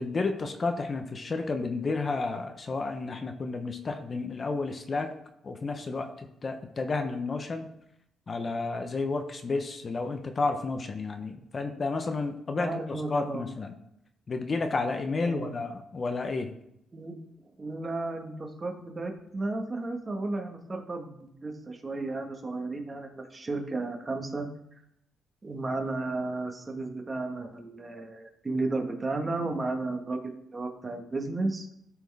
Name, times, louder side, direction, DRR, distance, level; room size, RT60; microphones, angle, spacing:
voice 1, 0.0-5.1 5.4-6.1 6.4-7.7 8.3-12.7 13.1-13.7 14.3-16.5, left 3 dB, 35° left, 6 dB, 0.8 m, -31 dB
voice 2, 12.6-13.4 15.2-15.5 16.9-17.2 17.6-24.5 25.4-31.7, right 2 dB, 25° right, 3 dB, 1.5 m, -33 dB
13.0 x 4.5 x 3.5 m, 0.78 s
cardioid pair, 90°, 0 cm